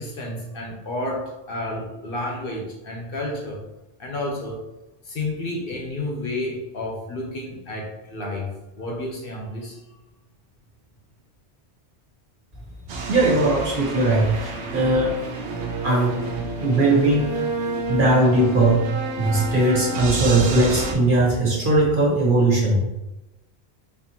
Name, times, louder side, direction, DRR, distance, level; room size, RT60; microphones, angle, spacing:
voice 1, 0.0-3.6 4.0-4.6 5.0-8.5 8.7-9.8, left 1 dB, 60° left, -1 dB, 0.9 m, -30 dB
sound 1, 12.9-20.9, right 3 dB, 80° right, 0.9 m, -29 dB
voice 2, 13.1-15.1 15.8-16.2 16.6-17.4 17.9-18.8 19.2-22.8, right 2 dB, 50° right, -5 dB, 1.4 m, -19 dB
4.3 x 3.0 x 2.8 m, 0.97 s
omnidirectional pair, 1.1 m